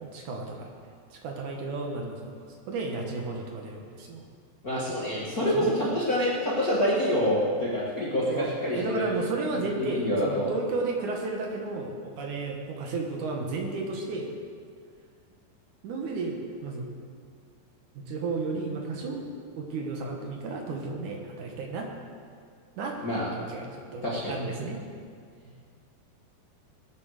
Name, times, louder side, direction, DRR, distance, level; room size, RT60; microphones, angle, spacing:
voice 1, 0.0-0.7 1.1-2.3 2.7-4.2 5.5-5.8 8.3-14.3 15.8-16.9 18.0-19.2 19.6-21.9 22.8-23.0 23.4-24.8, right 3 dB, 60° right, 1 dB, 2.3 m, -33 dB
voice 2, 4.6-9.1 9.5-10.5 23.0-23.3 24.0-24.4, equal, 65° left, -6 dB, 0.8 m, -27 dB
19.0 x 8.3 x 6.5 m, 2.1 s
omnidirectional pair, 4.9 m